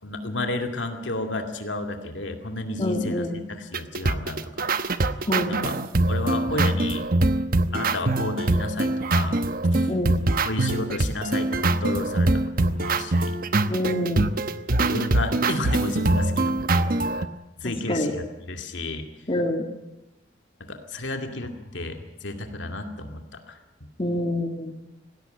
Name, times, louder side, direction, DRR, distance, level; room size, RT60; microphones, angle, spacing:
voice 1, 0.0-4.7 5.1-5.2 5.5-5.7 6.1-7.1 7.7-9.4 9.7-9.9 10.4-12.3 12.6-13.4 13.8-13.9 14.8-17.3 17.6-19.0 20.6-23.6, left 2 dB, 75° left, 5 dB, 2.4 m, -32 dB
voice 2, 2.8-3.4 5.3-5.8 9.9-10.2 13.7-14.3 17.6-18.1 19.3-19.6 24.0-24.8, left 1 dB, 30° left, 3 dB, 2.2 m, -27 dB
sound 1, 3.7-17.3, right 2 dB, 50° right, 1.0 m, -23 dB
19.5 x 16.5 x 9.1 m, 0.95 s
head